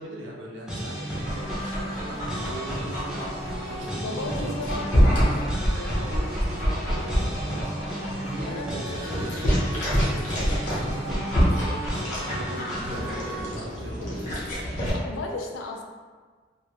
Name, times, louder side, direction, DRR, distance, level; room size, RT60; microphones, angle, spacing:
voice 1, 0.0-4.9 5.7-13.1 13.5-14.3, right 1 dB, 80° right, -2 dB, 0.5 m, -39 dB
sound 1, 0.7-13.5, right 1 dB, 5° right, 0.4 m, -34 dB
Dog, 1.1-14.9, equal, 45° left, 0.8 m, -27 dB
voice 2, 4.0-5.6 8.5-9.3 14.9-15.8, left 2 dB, 90° left, 1 dB, 0.4 m, -35 dB
2.1 x 2.0 x 2.9 m, 1.5 s
head